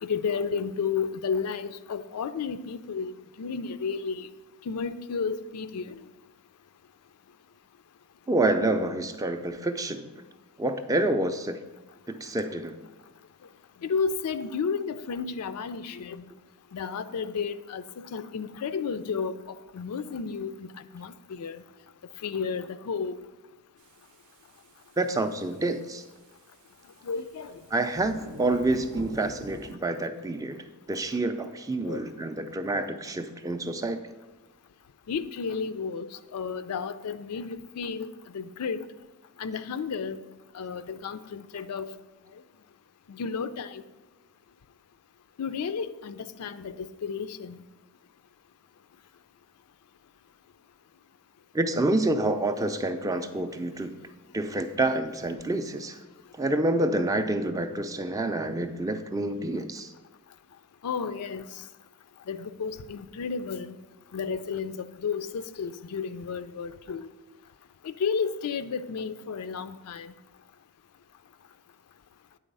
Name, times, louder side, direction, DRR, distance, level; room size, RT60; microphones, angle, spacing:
voice 1, 0.0-4.3 4.7-6.0 13.8-16.3 16.7-20.7 20.9-21.6 22.2-23.2 27.0-27.6 31.8-32.0 35.1-38.9 39.4-40.2 40.5-41.9 43.1-43.8 45.4-47.6 60.8-61.5 62.3-63.8 64.1-67.1 67.8-70.1, left 5 dB, 85° left, 12 dB, 0.4 m, -32 dB
voice 2, 8.3-10.1 10.6-11.6 12.1-12.7 25.0-26.0 27.7-34.0 51.5-53.9 54.3-56.0 56.3-59.9, right 2 dB, 15° right, 8 dB, 0.4 m, -28 dB
sound 1, 23.8-29.8, right 2 dB, 75° right, 0.6 m, -46 dB
9.0 x 3.9 x 5.3 m, 1.2 s
head